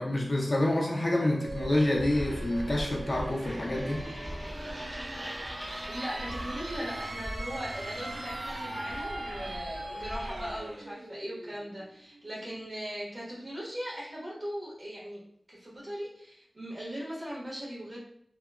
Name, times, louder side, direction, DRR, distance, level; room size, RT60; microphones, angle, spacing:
voice 1, 0.0-4.0, left 1 dB, 50° left, -2 dB, 0.5 m, -27 dB
sound 1, 1.1-12.6, right 2 dB, 80° right, 0.4 m, -41 dB
sound 2, 1.4-10.8, equal, 5° right, 0.8 m, -40 dB
voice 2, 5.9-15.2 15.5-18.0, equal, 40° right, -7 dB, 1.3 m, -39 dB
2.8 x 2.2 x 2.4 m, 0.67 s
wide cardioid pair, 70°, 0 cm